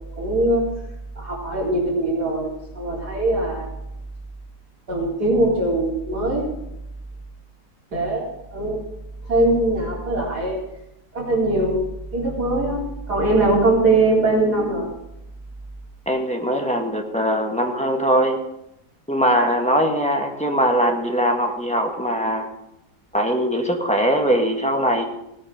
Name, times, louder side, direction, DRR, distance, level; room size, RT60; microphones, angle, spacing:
voice 1, 0.2-0.6 1.2-3.7 4.9-6.4 7.9-8.8 9.3-10.6 11.1-11.8 12.1-14.9, right 2 dB, 75° right, -4 dB, 4.6 m, -21 dB
voice 2, 16.1-18.4 19.1-22.5 23.1-25.0, equal, 5° left, 1 dB, 1.5 m, -21 dB
17.5 x 9.8 x 5.1 m, 0.84 s
omnidirectional pair, 1.8 m